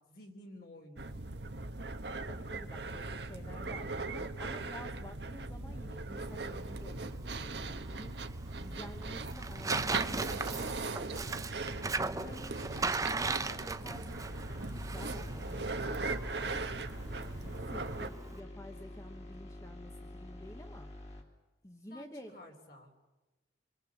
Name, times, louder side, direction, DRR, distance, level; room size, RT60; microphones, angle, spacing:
voice 1, 0.1-1.2 11.7-12.1 21.9-22.9, left 1 dB, 55° left, 3 dB, 3.6 m, -52 dB
sound 1, 1.0-18.1, right 3 dB, 70° right, 1.2 m, -39 dB
voice 2, 2.3-8.2 8.6-11.3 12.1-12.5 13.0-14.3 14.9-20.9 21.6-22.4, left 1 dB, 15° left, 4 dB, 1.2 m, -50 dB
Tearing, 6.2-18.4, right 3 dB, 20° right, 0.8 m, -39 dB
sound 2, 14.3-21.2, left 1 dB, 35° left, 2.9 m, -48 dB
26.5 x 23.5 x 7.2 m, 1.1 s
head